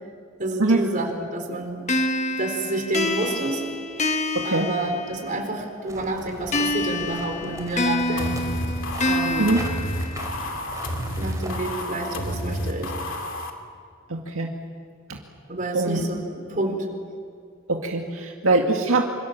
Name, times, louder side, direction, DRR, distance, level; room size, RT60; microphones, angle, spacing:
voice 1, 0.4-1.8 2.4-3.6 4.4-8.4 9.0-9.6 11.1-12.9 15.5-16.9, right 2 dB, 40° right, 3 dB, 4.3 m, -29 dB
sound 1, 1.9-5.5 6.5-10.5, left 2 dB, 35° left, 1.3 m, -27 dB
voice 2, 4.4-4.7 9.4-9.6 14.1-14.5 15.7-16.1 17.7-19.1, right 2 dB, 75° right, 1 dB, 2.0 m, -22 dB
sound 2, 5.9-11.8, right 1 dB, 15° right, 3.1 m, -40 dB
sound 3, 8.2-13.5, left 1 dB, 65° left, 2.8 m, -30 dB
27.0 x 26.5 x 7.5 m, 2.2 s
head